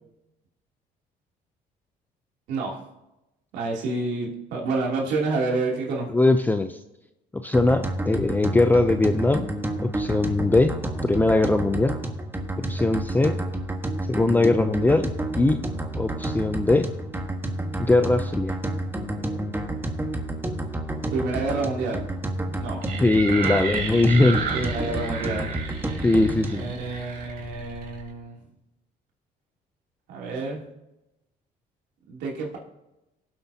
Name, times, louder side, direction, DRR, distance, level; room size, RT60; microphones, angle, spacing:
voice 1, 2.5-2.8 3.5-6.1 21.1-22.0 22.5-22.8 24.5-25.5 26.5-28.4 30.1-30.6 32.1-32.6, right 3 dB, 85° right, -2 dB, 2.9 m, -28 dB
voice 2, 6.1-6.8 7.4-9.5 9.8-10.7 11.0-12.0 12.6-13.4 14.1-15.6 16.0-16.9 17.8-18.6 23.0-24.5 26.0-26.6, left 2 dB, 10° left, 7 dB, 0.5 m, -21 dB
sound 1, 7.5-26.7, right 1 dB, 15° right, 1.3 m, -30 dB
sound 2, 22.8-28.1, right 5 dB, 65° right, 3.6 m, -32 dB
18.5 x 8.0 x 2.8 m, 0.93 s
cardioid pair, 110°, 17 cm